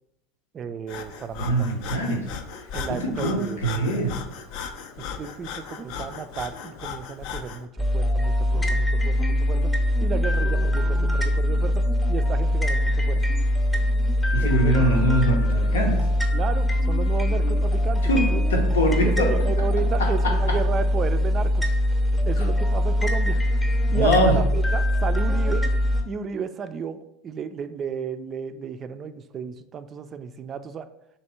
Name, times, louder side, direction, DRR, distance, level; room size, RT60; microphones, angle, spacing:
voice 1, 0.5-1.7 2.7-3.6 5.0-9.7 10.0-13.2 14.4-14.9 16.3-18.4 19.0-21.7 22.3-23.4 23.9-25.7 26.0-30.9, right 6 dB, 35° right, 11 dB, 0.3 m, -33 dB
Breathing, 0.9-7.6, left 6 dB, 65° left, 0.4 m, -36 dB
voice 2, 1.4-2.3 2.9-4.2 14.3-16.1 18.0-19.3 20.0-20.6 22.4-22.5 23.9-24.4, right 1 dB, 90° left, 1 dB, 0.7 m, -23 dB
sound 1, 7.8-26.0, left 1 dB, 10° left, 0.7 m, -22 dB
3.4 x 2.8 x 4.2 m, 0.84 s
hypercardioid pair, 90°, 0 cm